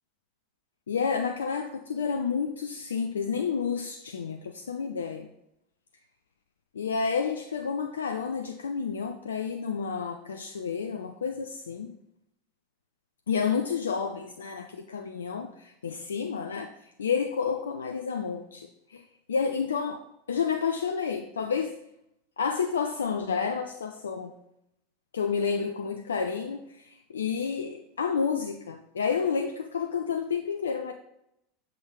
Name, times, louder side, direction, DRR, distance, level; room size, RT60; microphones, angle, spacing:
voice 1, 0.9-5.3 6.8-11.9 13.3-20.0 20.3-21.8 22.4-24.3 25.1-30.9, left 6 dB, 80° left, 5 dB, 0.4 m, -30 dB
6.9 x 3.8 x 4.9 m, 0.81 s
figure-of-eight pair, 80°, 0 cm